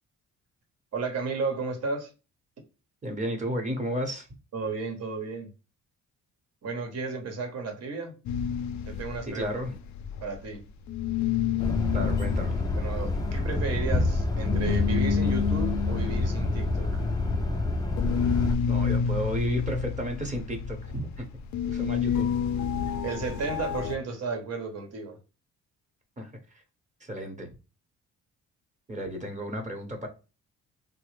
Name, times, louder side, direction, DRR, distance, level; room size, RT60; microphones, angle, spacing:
voice 1, 0.9-2.1 4.5-5.5 6.6-8.2 8.9-9.5 10.2-10.7 12.8-17.0 23.0-25.2, right 4 dB, 55° right, 1.0 m, -33 dB
voice 2, 3.0-4.3 9.3-9.8 11.9-12.7 18.7-21.2 21.7-22.3 26.2-26.3 27.0-27.5 28.9-30.1, equal, 25° right, 0.9 m, -33 dB
sound 1, 8.3-10.6 10.9-24.0, left 7 dB, 70° left, 0.4 m, -30 dB
sound 2, 11.6-18.6, left 2 dB, 15° left, 0.5 m, -28 dB
3.2 x 2.0 x 3.1 m
cardioid pair, 90°, 30 cm